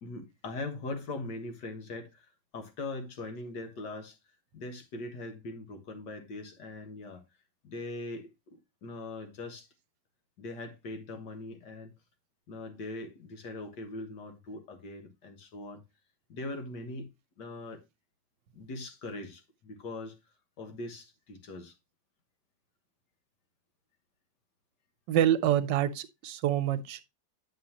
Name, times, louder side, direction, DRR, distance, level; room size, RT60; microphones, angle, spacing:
voice 1, 0.0-2.3 2.5-4.2 4.5-7.2 7.6-9.7 10.4-11.9 12.5-15.8 16.3-17.1 17.4-17.8 18.5-20.2 20.6-21.7, left 2 dB, 75° left, 2.1 m, -41 dB
voice 2, 25.1-27.0, right 11 dB, 85° right, 1.4 m, -26 dB
9.3 x 6.2 x 2.9 m
omnidirectional pair, 1.9 m